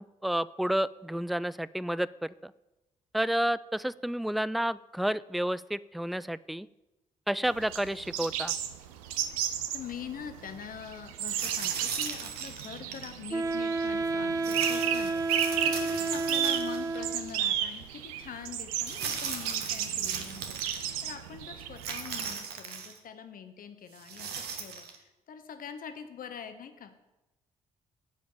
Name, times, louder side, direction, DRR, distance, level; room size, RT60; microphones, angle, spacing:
voice 1, 0.2-2.5 3.1-6.7 7.3-8.5, right 1 dB, ahead, 19 dB, 0.3 m, -30 dB
sound 1, 7.4-22.3, right 10 dB, 85° right, 0.6 m, -34 dB
voice 2, 9.7-26.9, left 7 dB, 55° left, 8 dB, 1.1 m, -44 dB
sound 2, 11.2-13.1 14.4-17.0 17.3-17.4 18.8-20.9 21.8-23.0 23.9-25.0, right 6 dB, 65° right, 1.3 m, -38 dB
Wind instrument woodwind instrument, 13.3-17.4, right 3 dB, 20° right, 0.9 m, -31 dB
9.2 x 5.1 x 7.0 m, 1.0 s
hypercardioid pair, 45°, 18 cm